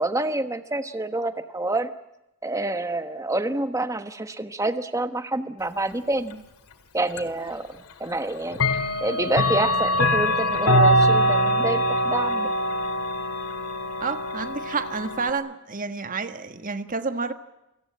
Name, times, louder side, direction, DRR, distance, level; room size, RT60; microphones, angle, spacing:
voice 1, 0.0-1.9 2.4-6.4 6.9-12.5, right 2 dB, 15° right, 9 dB, 1.2 m, -28 dB
Clock, 7.2-7.3 8.5-15.3, equal, 85° left, 2.2 m, -23 dB
voice 2, 14.0-17.3, right 4 dB, 35° right, 9 dB, 1.5 m, -29 dB
29.0 x 18.0 x 8.8 m, 0.92 s
head